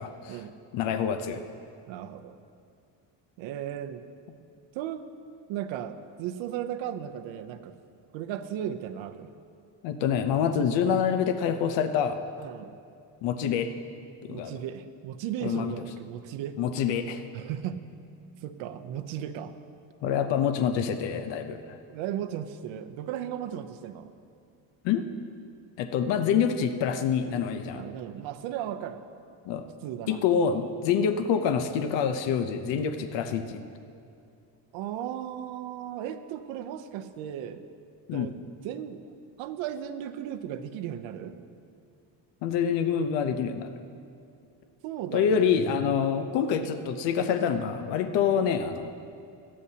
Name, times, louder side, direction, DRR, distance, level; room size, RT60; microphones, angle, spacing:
voice 1, 0.0-0.4 0.7-1.4 9.8-12.2 13.2-13.7 14.2-14.6 15.4-15.7 16.6-17.2 20.0-21.8 24.8-25.0 25.8-27.8 29.5-29.6 30.1-33.6 38.1-38.3 42.4-43.7 45.1-48.9, left 7 dB, 70° left, 8 dB, 0.8 m, -26 dB
voice 2, 1.9-2.4 3.4-4.0 4.7-5.0 5.5-7.7 8.1-9.3 12.4-12.7 14.3-16.6 17.3-17.8 18.4-19.5 20.0-20.2 21.9-24.1 27.7-29.1 29.8-30.2 34.7-37.6 38.1-39.0 39.4-41.4 44.8-45.5 45.8-45.9, right 10 dB, 85° right, 9 dB, 0.8 m, -36 dB
18.5 x 12.5 x 2.8 m, 2.5 s
cardioid pair, 170°, 45 cm